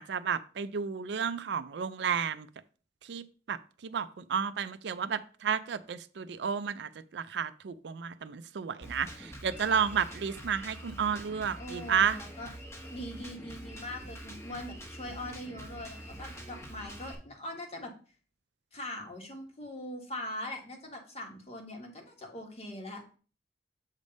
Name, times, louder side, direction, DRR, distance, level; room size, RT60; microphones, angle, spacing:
voice 1, 0.0-2.5 3.0-12.2, right 7 dB, 70° right, 0.4 m, -32 dB
Drum kit, 8.8-17.1, equal, 15° left, 1.1 m, -45 dB
voice 2, 11.6-12.5 12.8-17.9 18.7-23.0, left 1 dB, 35° left, 1.5 m, -42 dB
7.3 x 3.4 x 5.2 m
head